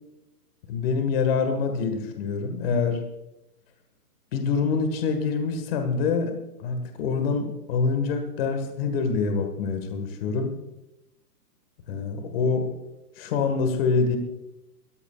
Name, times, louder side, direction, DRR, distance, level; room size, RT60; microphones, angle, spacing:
voice 1, 0.7-3.0 4.3-6.3 6.6-10.5 11.9-12.7 13.2-14.2, left 5 dB, 35° left, 6 dB, 1.7 m, -25 dB
22.0 x 14.5 x 2.4 m, 0.93 s
hypercardioid pair, 160°, 48 cm